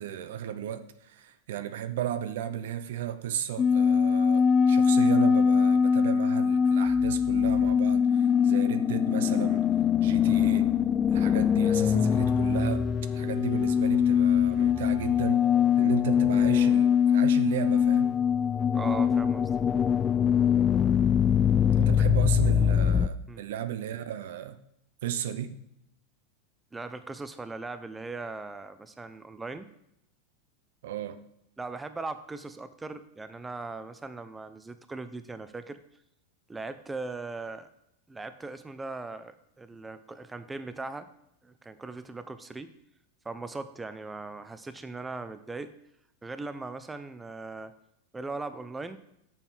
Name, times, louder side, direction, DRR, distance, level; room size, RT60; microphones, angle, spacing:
voice 1, 0.0-9.7 10.0-10.7 11.1-12.9 13.1-15.5 15.8-18.2 21.8-24.6 25.0-25.6 30.8-31.2, right 10 dB, 70° right, 0.7 m, -34 dB
sound 1, 3.6-23.1, left 7 dB, 25° left, 0.4 m, -23 dB
sound 2, 6.8-15.2, left 2 dB, 10° left, 1.2 m, -45 dB
voice 2, 18.7-19.5 22.0-22.1 23.3-23.4 26.7-29.7 31.6-35.8 36.5-37.7 38.1-41.1 41.4-42.7 43.2-45.7 46.2-47.7 48.1-49.0, right 3 dB, 15° right, 0.7 m, -39 dB
7.2 x 5.3 x 5.7 m
hypercardioid pair, 100°, 0 cm